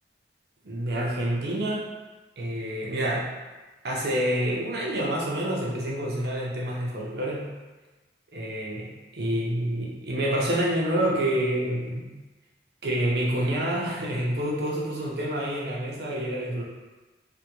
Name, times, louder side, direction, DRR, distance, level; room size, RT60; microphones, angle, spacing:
voice 1, 0.6-1.9 2.4-3.3 3.8-7.5 8.3-8.9 9.1-12.1 12.8-16.6, right 1 dB, 65° right, -3 dB, 0.6 m, -27 dB
3.4 x 2.1 x 3.0 m, 1.2 s
head